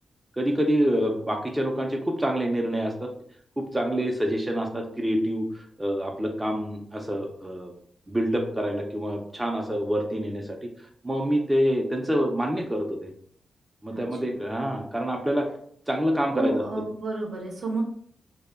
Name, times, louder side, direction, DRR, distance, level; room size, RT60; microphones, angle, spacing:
voice 1, 0.4-3.1 3.6-7.7 8.1-10.7 11.0-13.1 13.8-15.5 15.9-16.6, equal, 15° right, 1 dB, 0.4 m, -26 dB
voice 2, 13.9-14.3 16.3-17.8, right 2 dB, 65° right, 1 dB, 0.6 m, -30 dB
2.1 x 2.0 x 3.4 m, 0.62 s
cardioid pair, 95°, 0 cm